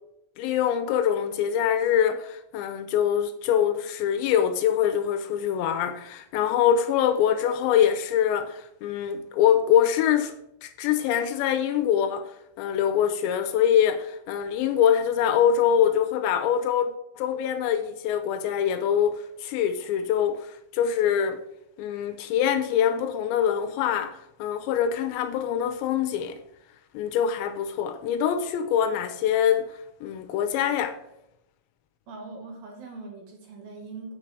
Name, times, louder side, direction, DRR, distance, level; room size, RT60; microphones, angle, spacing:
voice 1, 0.4-10.3 10.6-12.3 12.6-16.9 17.2-21.4 21.8-26.4 26.9-31.0, left 9 dB, 80° left, 2.9 m, -24 dB
voice 2, 32.1-34.2, right 3 dB, 60° right, 2.9 m, -41 dB
7.3 x 6.7 x 4.7 m
omnidirectional pair, 5.2 m